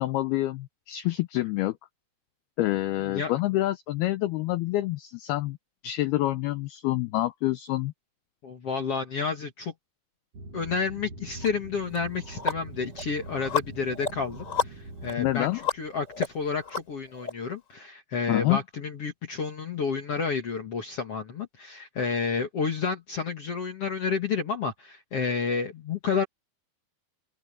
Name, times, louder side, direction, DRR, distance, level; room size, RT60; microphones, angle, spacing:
voice 1, 0.0-1.8 2.6-5.6 5.8-7.9 15.2-15.6 18.3-18.6, left 16 dB, 85° left, 2.2 m, -27 dB
voice 2, 3.0-3.3 8.4-9.7 10.5-15.5 15.8-26.2, left 5 dB, 60° left, 1.5 m, -30 dB
sound 1, 10.3-15.3, right 2 dB, 40° right, 3.3 m, -43 dB
Tick Tock Manipulated, 11.4-11.5 11.9-17.3, left 6 dB, 20° left, 3.3 m, -33 dB
open air
omnidirectional pair, 5.4 m